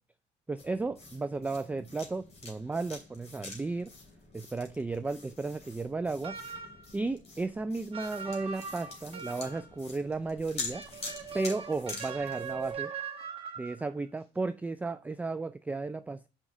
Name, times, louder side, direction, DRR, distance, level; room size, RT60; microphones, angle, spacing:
voice 1, 0.5-3.9 4.3-6.4 6.9-10.8 11.3-12.9 13.6-16.3, right 3 dB, 10° right, 0.3 m, -34 dB
sound 1, 0.6-12.7, left 3 dB, 40° left, 2.9 m, -46 dB
sound 2, 6.2-6.9 7.9-9.8 10.7-13.9, right 6 dB, 35° right, 1.7 m, -41 dB
6.2 x 5.4 x 4.8 m
cardioid pair, 110°, 17 cm